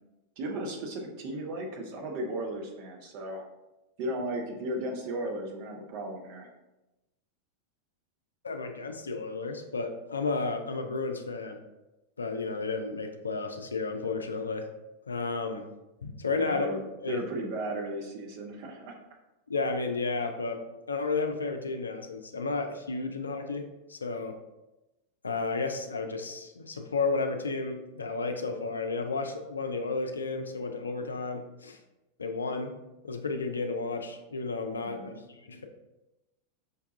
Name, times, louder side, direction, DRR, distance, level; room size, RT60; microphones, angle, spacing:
voice 1, 0.4-3.4 4.0-6.5 16.4-16.8 17.1-19.0 34.8-35.3, right 1 dB, 45° right, 1 dB, 0.7 m, -35 dB
voice 2, 8.4-11.6 12.2-14.7 15.1-15.7 16.0-16.7 17.0-17.3 19.5-20.6 20.9-24.4 25.2-31.8 32.2-32.8 33.0-35.7, left 3 dB, 75° left, 6 dB, 0.4 m, -32 dB
5.2 x 2.3 x 2.6 m, 0.99 s
figure-of-eight pair, 90°, 0 cm